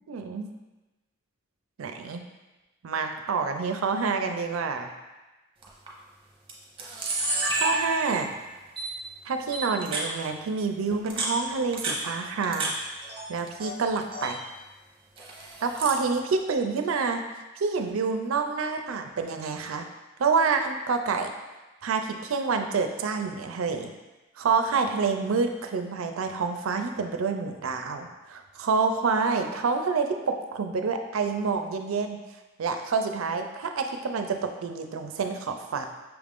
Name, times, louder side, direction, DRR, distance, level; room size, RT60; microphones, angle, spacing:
voice 1, 0.1-0.5 1.8-2.2 2.8-4.9 7.5-8.3 9.3-12.7 13.3-14.4 15.6-17.2 17.6-19.9 20.2-21.3 21.8-23.9 24.4-32.2 32.6-35.9, right 4 dB, 85° right, 6 dB, 0.4 m, -28 dB
Camera, 5.6-5.9 6.5-6.6 6.8-8.3 8.8-8.9 9.5-10.1 10.9-12.7 13.0-13.7 14.0-14.4 15.2-16.0, right 2 dB, 25° right, 0.7 m, -30 dB
5.9 x 2.5 x 3.5 m, 1.1 s
head